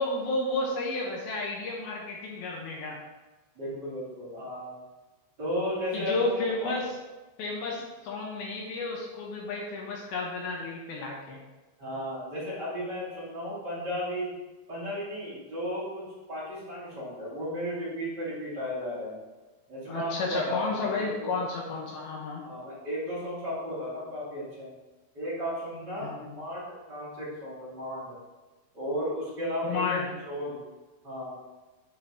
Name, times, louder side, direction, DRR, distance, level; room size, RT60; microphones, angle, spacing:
voice 1, 0.0-3.0 5.9-6.9 7.4-11.4 19.9-22.4 26.0-26.3 29.6-30.1, left 3 dB, 70° left, -1 dB, 2.6 m, -32 dB
voice 2, 3.5-4.7 5.4-6.7 11.8-14.3 14.7-16.0 16.3-19.2 19.7-21.3 22.4-24.7 25.1-28.2 28.7-30.6 31.0-31.3, equal, 25° right, -10 dB, 2.8 m, -34 dB
10.0 x 5.6 x 3.1 m, 1.2 s
omnidirectional pair, 5.1 m